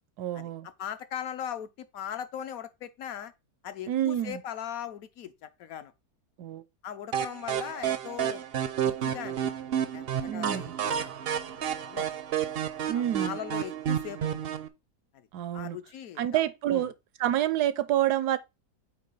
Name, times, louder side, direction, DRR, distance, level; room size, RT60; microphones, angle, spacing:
voice 1, 0.2-0.7 3.9-4.4 6.4-6.6 10.3-10.7 12.9-13.4 15.3-15.8 16.2-16.9 17.2-18.4, right 12 dB, 80° right, 1.2 m, -28 dB
voice 2, 0.8-3.3 3.6-5.9 6.8-8.4 8.8-9.5 9.9-12.1 12.9-14.4 15.5-16.4 16.7-16.9, left 9 dB, 65° left, 1.1 m, -39 dB
sound 1, 7.1-14.7, right 9 dB, 60° right, 0.6 m, -31 dB
8.3 x 2.9 x 5.4 m
omnidirectional pair, 1.7 m